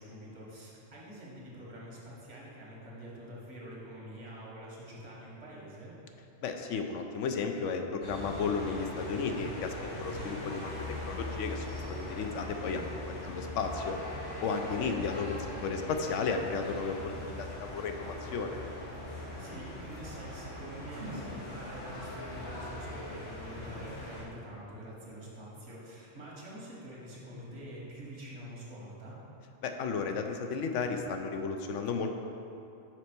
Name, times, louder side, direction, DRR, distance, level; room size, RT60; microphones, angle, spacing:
voice 1, 0.0-5.9 14.6-14.9 19.1-29.2, equal, 75° right, -5 dB, 1.8 m, -46 dB
voice 2, 6.4-10.7 11.0-12.8 13.2-14.0 14.4-18.6 29.6-32.1, left 5 dB, 85° left, 5 dB, 0.9 m, -34 dB
sound 1, 8.0-24.2, left 1 dB, 65° left, 1.9 m, -41 dB
6.1 x 4.3 x 5.9 m, 2.8 s
omnidirectional pair, 1.2 m